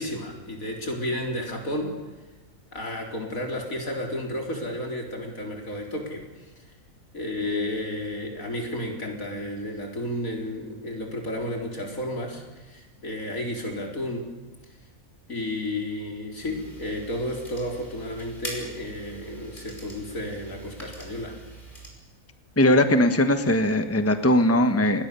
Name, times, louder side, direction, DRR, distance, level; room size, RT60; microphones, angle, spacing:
voice 1, 0.0-2.0 2.7-6.3 7.1-14.3 15.3-21.4, left 1 dB, 80° left, 1 dB, 4.6 m, -32 dB
sound 1, 16.4-21.9, right 1 dB, 35° left, 5.7 m, -43 dB
voice 2, 22.6-25.1, left 1 dB, 10° left, 8 dB, 1.3 m, -20 dB
28.0 x 20.0 x 7.0 m, 1.2 s
omnidirectional pair, 1.4 m